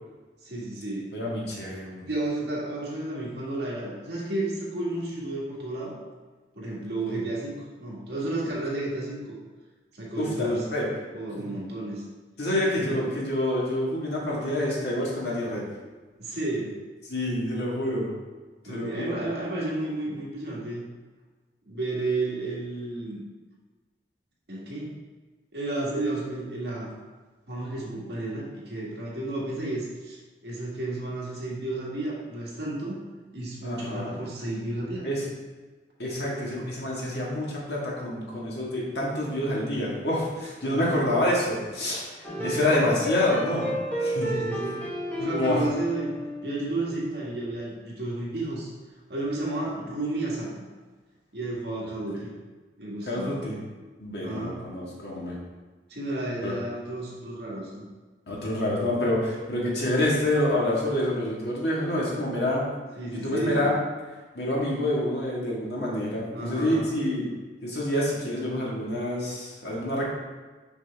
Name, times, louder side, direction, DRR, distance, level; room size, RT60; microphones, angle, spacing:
voice 1, 0.4-1.1 2.0-6.0 6.6-9.4 9.9-10.6 11.1-12.0 12.8-13.0 16.2-16.8 18.7-20.9 21.7-23.2 24.5-25.0 25.5-26.9 27.5-30.2 30.4-33.0 33.3-35.1 40.6-41.0 42.4-42.6 44.3-44.9 45.2-46.2 46.4-48.7 49.1-50.6 51.3-52.3 52.8-53.5 54.2-54.6 55.9-57.8 63.0-63.7 66.3-66.9, right 2 dB, 65° right, -5 dB, 1.8 m, -32 dB
voice 2, 1.1-2.0 7.0-7.1 10.2-10.9 11.4-11.5 12.4-15.6 17.1-18.1 18.6-19.2 33.6-34.2 35.0-35.2 36.0-42.1 42.4-43.7 44.0-44.3 45.3-45.6 52.1-52.2 53.1-53.6 54.0-55.4 56.4-56.5 58.3-62.7 63.1-63.7 64.3-67.3 67.6-70.0, left 1 dB, 70° left, -5 dB, 1.8 m, -27 dB
sound 1, 42.2-46.9, right 1 dB, 10° left, 1.2 m, -31 dB
6.2 x 5.4 x 3.5 m, 1.3 s
head